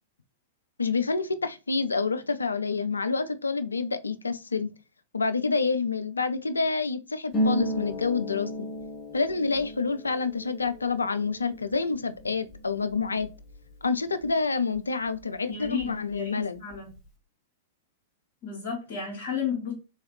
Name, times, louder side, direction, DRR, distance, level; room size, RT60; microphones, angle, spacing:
voice 1, 0.8-4.7 5.1-8.5 9.1-13.3 13.8-16.6, left 4 dB, 75° left, 0.3 m, -28 dB
Harp, 7.3-14.8 15.1-16.2 16.4-17.1, equal, 25° left, 0.9 m, -35 dB
voice 2, 15.5-16.9 18.4-19.7, left 6 dB, 45° left, 1.5 m, -33 dB
3.4 x 3.1 x 3.1 m
figure-of-eight pair, 100°, 0 cm